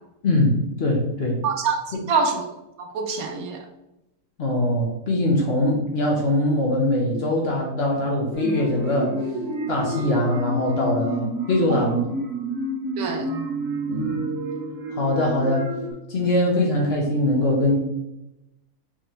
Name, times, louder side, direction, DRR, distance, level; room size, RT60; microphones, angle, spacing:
voice 1, 0.2-1.4 4.4-9.2 9.7-12.1 13.9-14.2 14.9-15.7 16.1-17.8, left 1 dB, 50° left, -2 dB, 1.0 m, -22 dB
voice 2, 1.4-2.5 2.8-3.6 13.0-13.3, right 5 dB, 75° right, 2 dB, 1.1 m, -25 dB
sound 1, 8.3-15.9, right 1 dB, 50° right, 1.6 m, -29 dB
4.5 x 3.2 x 3.0 m, 0.90 s
omnidirectional pair, 1.6 m